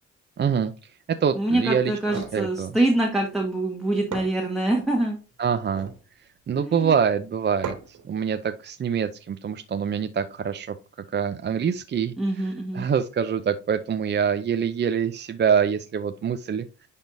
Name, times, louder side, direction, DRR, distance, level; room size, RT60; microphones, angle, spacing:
voice 1, 0.4-0.7 1.2-2.8 5.4-5.9 6.5-10.7 11.1-16.7, right 7 dB, 35° right, 9 dB, 0.6 m, -25 dB
voice 2, 1.4-5.2 6.5-6.9 12.2-12.8, right 1 dB, ahead, -1 dB, 1.6 m, -25 dB
sound 1, 2.0-2.4 3.7-3.8 4.1-4.9 5.6-6.0 7.6-8.1, right 5 dB, 80° right, 2.5 m, -36 dB
10.5 x 3.6 x 2.6 m, 0.33 s
cardioid pair, 90°, 30 cm